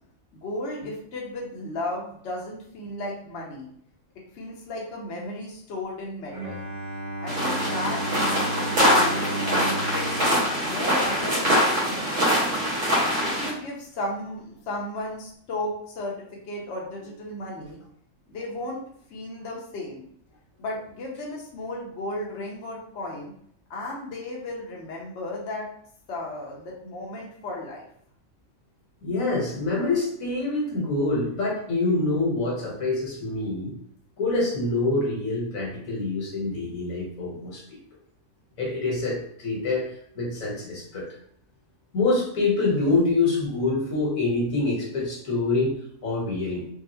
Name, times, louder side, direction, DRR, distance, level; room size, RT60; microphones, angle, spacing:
voice 1, 0.3-3.7 4.3-6.7 7.2-10.2 10.6-12.5 13.2-17.8 18.3-18.8 19.1-20.1 20.6-23.3 23.7-25.7 26.1-27.8, left 1 dB, 60° left, -3 dB, 0.9 m, -34 dB
Bowed string instrument, 6.3-11.6, right 1 dB, 40° right, 1.0 m, -34 dB
sound 1, 7.3-13.5, equal, 60° right, 1.4 m, -23 dB
voice 2, 29.0-33.7 34.2-37.8 38.6-39.9 40.1-41.1 41.9-45.8 46.0-46.7, left 3 dB, 80° left, -3 dB, 1.5 m, -26 dB
3.7 x 2.4 x 2.7 m, 0.66 s
omnidirectional pair, 1.4 m